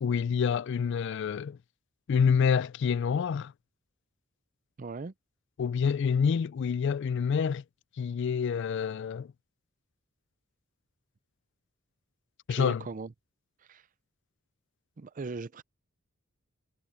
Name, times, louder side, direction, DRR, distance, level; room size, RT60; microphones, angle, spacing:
voice 1, 0.0-1.6 2.1-3.5 5.6-7.6 8.0-9.3 12.5-12.8, left 6 dB, 55° left, 0.3 m, -27 dB
voice 2, 4.8-5.1 12.5-13.1 13.7-13.8 15.0-15.6, right 3 dB, 35° right, 0.5 m, -38 dB
head